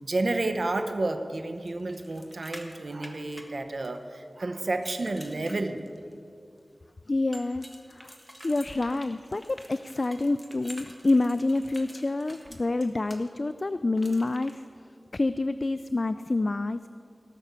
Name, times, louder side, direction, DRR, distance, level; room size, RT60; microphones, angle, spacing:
voice 1, 0.0-5.8, right 2 dB, 65° right, 7 dB, 0.9 m, -30 dB
sound 1, 1.7-4.2 4.6-6.1 7.3-13.2 14.0-14.5, equal, ahead, 1.5 m, -48 dB
voice 2, 7.1-8.1 8.4-14.6 15.1-16.8, left 2 dB, 50° left, 12 dB, 0.3 m, -27 dB
18.0 x 6.3 x 6.8 m, 2.3 s
wide cardioid pair, 55°, 0 cm